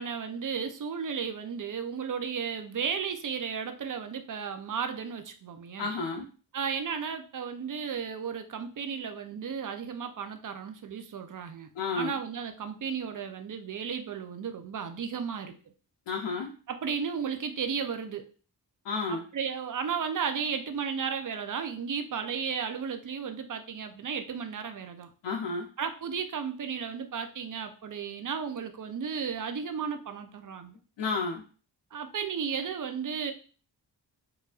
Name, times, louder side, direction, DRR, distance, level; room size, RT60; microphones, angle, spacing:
voice 1, 0.0-5.9 6.5-11.7 11.9-15.5 16.7-18.3 19.1-25.1 25.8-30.8 31.9-33.3, right 6 dB, 50° right, 7 dB, 0.5 m, -34 dB
voice 2, 5.8-6.3 11.8-12.1 16.1-16.5 18.8-19.2 25.2-25.7 31.0-31.4, left 4 dB, 85° left, 1 dB, 0.6 m, -31 dB
4.7 x 2.5 x 2.4 m, 0.38 s
wide cardioid pair, 110°, 42 cm